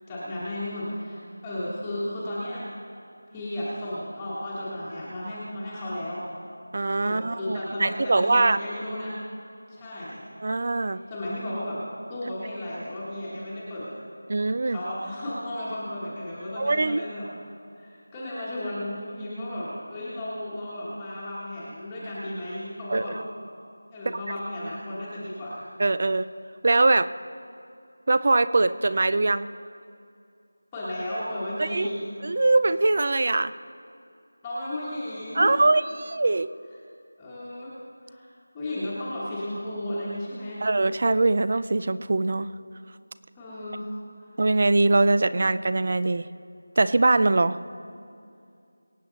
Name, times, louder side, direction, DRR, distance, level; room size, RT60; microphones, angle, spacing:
voice 1, 0.1-2.6 3.3-6.3 7.0-9.2 9.7-10.2 11.1-11.8 12.1-13.9 14.7-17.3 17.7-23.2 23.9-25.6 30.7-32.1 34.4-35.5 37.2-37.7 38.1-38.3 38.5-40.6 43.3-43.9 44.2-44.3, left 1 dB, 10° left, -10 dB, 1.3 m, -34 dB
voice 2, 6.7-8.6 10.4-11.0 14.3-14.8 16.6-17.0 22.9-23.1 25.8-26.3 26.6-27.1 28.1-29.5 31.6-31.9 32.2-33.5 35.3-36.5 40.6-42.5 44.4-46.3 46.8-47.6, right 2 dB, 30° right, 15 dB, 0.4 m, -22 dB
24.0 x 8.6 x 3.9 m, 2.5 s
figure-of-eight pair, 180°, 0 cm